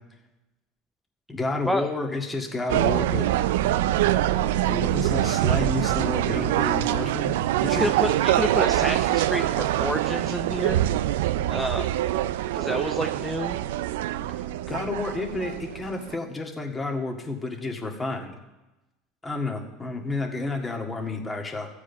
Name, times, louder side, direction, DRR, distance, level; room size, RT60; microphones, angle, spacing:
voice 1, 1.3-3.3 4.7-7.3 7.6-7.9 14.7-18.4 19.2-21.7, left 2 dB, 20° left, 2 dB, 1.9 m, -30 dB
sound 1, 2.7-16.1, right 13 dB, 80° right, 0.3 m, -24 dB
voice 2, 7.7-10.8 11.5-12.0 12.5-13.6, equal, ahead, 5 dB, 0.6 m, -29 dB
14.0 x 4.9 x 8.2 m, 1.0 s
hypercardioid pair, 90°, 0 cm